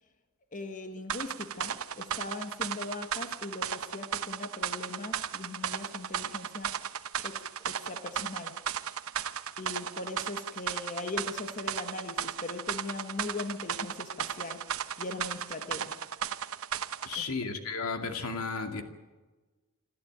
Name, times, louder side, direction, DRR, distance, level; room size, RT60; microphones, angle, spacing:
voice 1, 0.5-6.8 7.2-8.7 9.6-16.0 17.2-17.3, left 2 dB, 35° left, 1.4 m, -40 dB
sound 1, 1.1-17.2, right 8 dB, 70° right, 0.9 m, -35 dB
voice 2, 17.0-18.8, left 4 dB, 80° left, 2.4 m, -34 dB
27.0 x 13.5 x 8.8 m
head